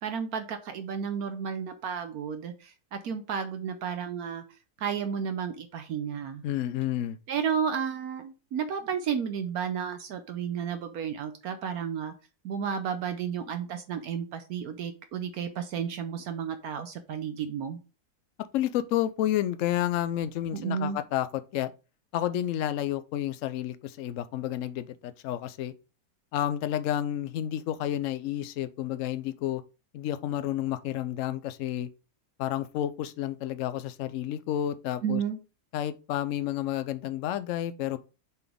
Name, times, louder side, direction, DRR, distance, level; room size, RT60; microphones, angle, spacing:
voice 1, 0.0-4.4 4.8-6.4 7.3-12.1 12.4-17.8 20.5-21.0 35.0-35.4, right 7 dB, 70° right, 1.1 m, -32 dB
voice 2, 6.4-7.2 18.5-21.7 22.1-25.7 26.3-29.6 29.9-31.9 32.4-35.2 35.7-38.0, left 12 dB, 65° left, 0.8 m, -30 dB
6.8 x 4.0 x 3.5 m
omnidirectional pair, 1.8 m